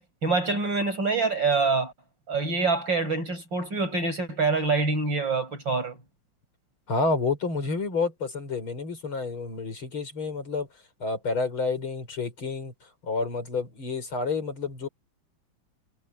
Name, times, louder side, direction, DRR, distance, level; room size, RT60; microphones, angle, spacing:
voice 1, 0.0-1.9 2.3-6.0, right 4 dB, 65° right, 7.6 m, -26 dB
voice 2, 6.9-10.7 11.0-12.7 13.0-14.9, left 3 dB, 90° left, 5.9 m, -29 dB
omnidirectional pair, 2.2 m